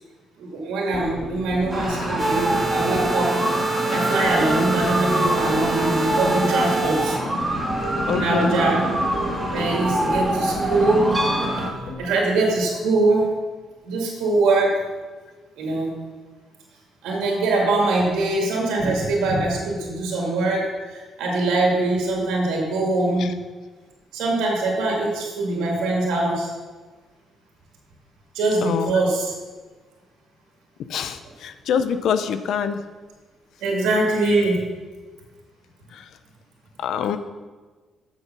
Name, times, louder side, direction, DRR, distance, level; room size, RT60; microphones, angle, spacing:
voice 1, 0.4-3.3 3.9-7.2 8.1-8.8 9.5-11.1 12.0-13.3 13.8-14.8 15.6-15.9 17.0-23.3 24.1-26.5 28.3-29.3 33.6-34.6, right 2 dB, 90° right, -1 dB, 2.2 m, -22 dB
sound 1, 0.9-13.2 13.4-13.5 13.7-13.8, left 2 dB, 60° left, 1.7 m, -37 dB
sound 2, 1.7-11.7, right 1 dB, 15° right, 2.2 m, -24 dB
sound 3, 2.2-7.2, right 3 dB, 40° right, 0.7 m, -27 dB
voice 2, 8.1-8.6 23.2-23.3 28.6-29.0 30.9-32.8 36.8-37.2, left 7 dB, 75° left, 11 dB, 0.6 m, -25 dB
7.1 x 6.8 x 6.0 m, 1.3 s
cardioid pair, 80°, 0 cm